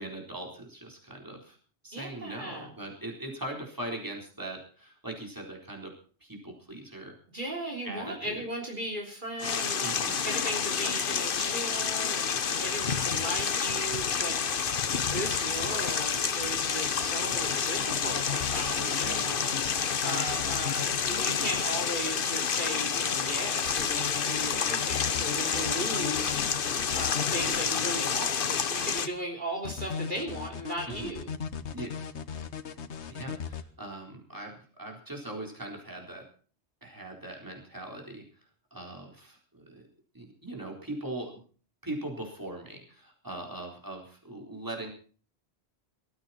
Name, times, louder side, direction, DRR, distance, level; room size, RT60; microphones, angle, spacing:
voice 1, 0.0-1.6 1.8-5.9 6.2-7.1 7.8-8.4 9.8-10.2 18.6-19.3 30.9-31.1 31.7-32.0 33.1-36.2 36.8-38.2 38.7-39.8 40.1-41.4 41.8-44.9, right 1 dB, 15° right, 1 dB, 4.1 m, -40 dB
voice 2, 1.9-2.7 7.3-9.9 10.2-12.3 12.6-14.4 15.0-19.4 20.0-26.4 26.9-31.3, right 1 dB, 45° right, 1 dB, 3.5 m, -37 dB
sound 1, 9.4-29.1, left 6 dB, 55° left, 1.1 m, -29 dB
sound 2, 17.8-21.6 23.7-27.6 29.7-33.6, left 8 dB, 80° left, 1.4 m, -38 dB
19.0 x 14.5 x 4.3 m, 0.41 s
omnidirectional pair, 1.1 m